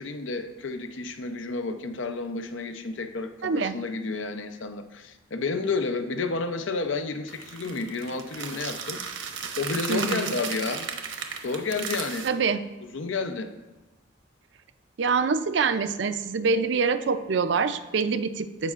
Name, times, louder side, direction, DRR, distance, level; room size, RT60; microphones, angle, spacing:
voice 1, 0.0-9.0 9.6-10.9 11.4-12.4 12.9-13.5, left 4 dB, 75° left, 8 dB, 0.6 m, -31 dB
voice 2, 3.4-3.8 9.9-10.3 12.2-12.6 15.0-18.7, right 5 dB, 65° right, 10 dB, 0.4 m, -25 dB
sound 1, 7.3-12.3, right 6 dB, 80° right, 0.9 m, -35 dB
15.5 x 5.3 x 2.5 m, 1.1 s
head